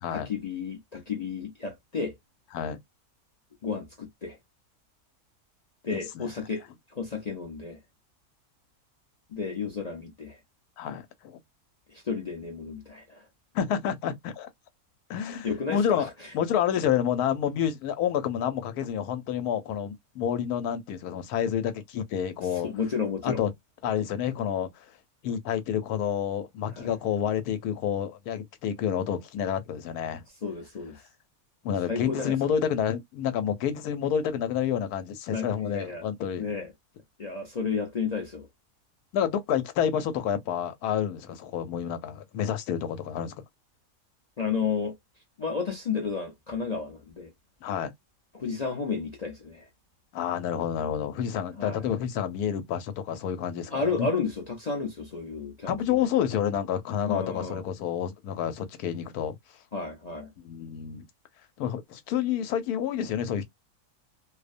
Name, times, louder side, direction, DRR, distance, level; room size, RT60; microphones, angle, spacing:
voice 1, 0.1-2.2 3.6-4.4 5.8-6.6 6.9-7.8 9.3-10.4 11.9-13.2 15.4-16.1 22.6-23.4 26.8-26.9 30.4-31.0 31.9-32.4 35.3-36.0 36.4-36.7 37.2-38.5 44.4-44.9 45.4-47.3 48.3-49.6 51.6-51.9 53.7-55.8 57.1-57.6 59.7-60.3, left 5 dB, 55° left, 0.4 m, -32 dB
voice 2, 5.9-6.3 10.8-11.4 13.5-14.5 15.1-22.7 23.2-23.5 23.8-24.7 25.2-30.2 31.6-36.5 39.1-43.3 47.6-47.9 50.1-54.1 55.7-59.4 60.4-61.1 61.6-63.4, left 9 dB, 85° left, 1.2 m, -29 dB
2.6 x 2.1 x 2.4 m
omnidirectional pair, 1.6 m